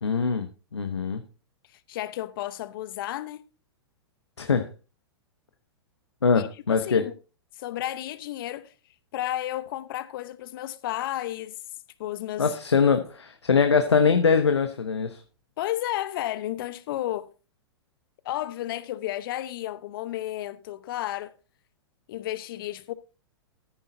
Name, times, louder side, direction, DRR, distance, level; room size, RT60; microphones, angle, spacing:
voice 1, 0.0-1.2 4.4-4.7 6.2-7.1 12.4-15.2, left 5 dB, 85° left, 1.0 m, -23 dB
voice 2, 1.9-3.4 6.3-7.1 7.5-8.7 9.1-11.5 12.0-12.6 15.6-17.3 18.2-21.3 22.1-22.9, left 14 dB, 55° left, 0.9 m, -32 dB
14.0 x 10.0 x 2.7 m
figure-of-eight pair, 105°, 14 cm